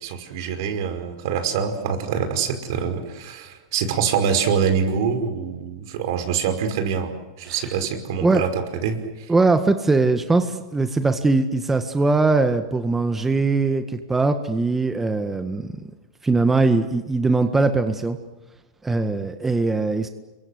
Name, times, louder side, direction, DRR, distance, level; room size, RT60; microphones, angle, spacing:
voice 1, 0.0-9.3, right 7 dB, 65° right, 8 dB, 5.3 m, -25 dB
voice 2, 9.3-15.7 16.2-18.2 18.8-20.1, right 3 dB, 10° right, 8 dB, 1.7 m, -21 dB
27.5 x 23.5 x 8.1 m, 1.1 s
hypercardioid pair, 125°, 2 cm